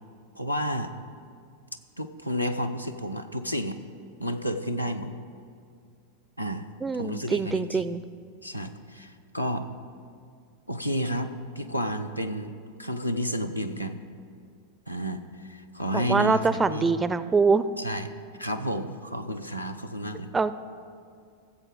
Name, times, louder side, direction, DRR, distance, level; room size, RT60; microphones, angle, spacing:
voice 1, 0.4-0.9 2.0-3.8 4.2-5.1 6.4-6.7 6.9-7.9 8.4-9.7 10.7-14.0 14.9-16.9 17.8-18.1 18.4-20.3, equal, 90° left, 6 dB, 0.6 m, -31 dB
voice 2, 6.8-8.0 15.9-17.6 20.3-20.5, right 4 dB, 15° right, 14 dB, 0.4 m, -24 dB
15.5 x 7.5 x 4.9 m, 2.3 s
figure-of-eight pair, 90°, 0 cm